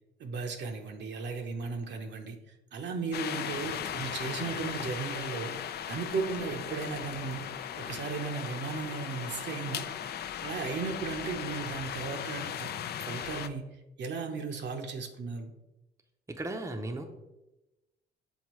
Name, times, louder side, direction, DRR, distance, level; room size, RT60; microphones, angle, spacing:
voice 1, 0.2-5.5 5.9-7.4 7.8-9.9 10.4-12.7 13.0-15.5, right 4 dB, 65° right, 4 dB, 0.9 m, -36 dB
sound 1, 3.1-13.5, left 9 dB, 55° left, 0.4 m, -37 dB
voice 2, 16.3-17.0, right 2 dB, 15° right, 4 dB, 0.6 m, -36 dB
7.2 x 4.2 x 3.1 m, 1.0 s
cardioid pair, 90°, 20 cm